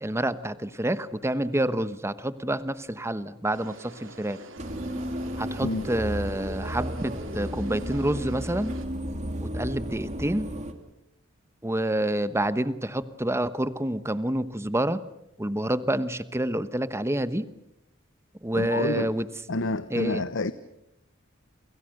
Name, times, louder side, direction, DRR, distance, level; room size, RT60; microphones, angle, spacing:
voice 1, 0.0-4.4 5.4-8.7 9.4-10.5 11.6-15.0 15.4-17.5 18.4-19.3 19.9-20.2, right 1 dB, 15° right, 1.1 m, -28 dB
sound 1, 3.5-8.9, right 3 dB, 65° right, 3.4 m, -47 dB
sound 2, 4.6-10.7, equal, 35° right, 2.8 m, -33 dB
voice 2, 18.5-19.1 19.5-20.5, left 2 dB, 65° left, 1.0 m, -28 dB
29.0 x 26.5 x 6.6 m
head